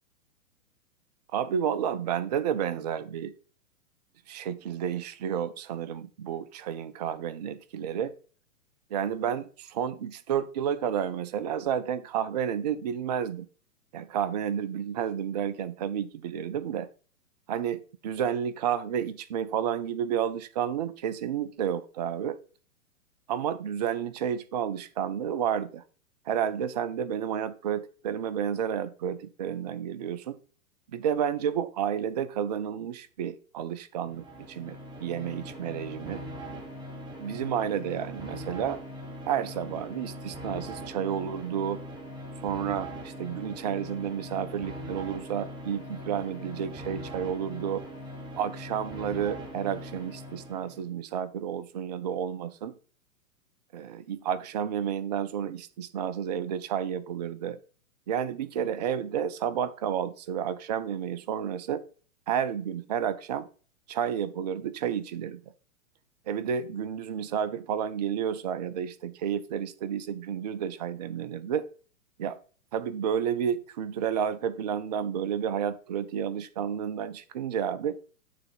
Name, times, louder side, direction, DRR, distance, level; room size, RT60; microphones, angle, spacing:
voice 1, 1.3-3.3 4.3-8.1 8.9-13.5 13.9-16.9 17.5-22.4 23.3-25.8 26.3-30.4 30.9-36.2 37.2-38.8 39.3-41.8 42.4-47.8 48.4-52.7 53.7-57.6 58.1-61.8 62.3-63.5 63.9-65.5 66.3-71.7 72.2-72.4 72.7-78.0, right 8 dB, 30° right, 13 dB, 0.4 m, -31 dB
sound 1, 34.0-50.8, equal, 10° right, 1.3 m, -41 dB
9.2 x 3.3 x 4.0 m, 0.39 s
figure-of-eight pair, 115°, 43 cm